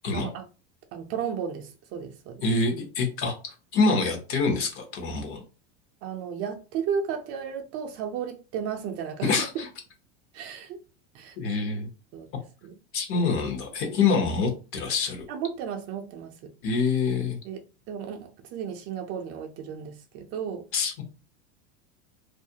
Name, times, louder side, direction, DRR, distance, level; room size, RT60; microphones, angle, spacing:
voice 1, 0.1-0.5 0.9-2.4 6.0-9.5 10.3-10.8 11.1-11.4 12.1-12.3 12.6-12.7 15.3-16.5 17.4-17.6 17.9-20.6, right 7 dB, 45° right, 0.5 m, -34 dB
voice 2, 2.4-5.4 9.2-9.7 11.4-11.9 12.9-15.3 16.6-17.4 20.7-21.0, left 4 dB, 40° left, 0.8 m, -26 dB
2.4 x 2.1 x 2.7 m
supercardioid pair, 125°, 34 cm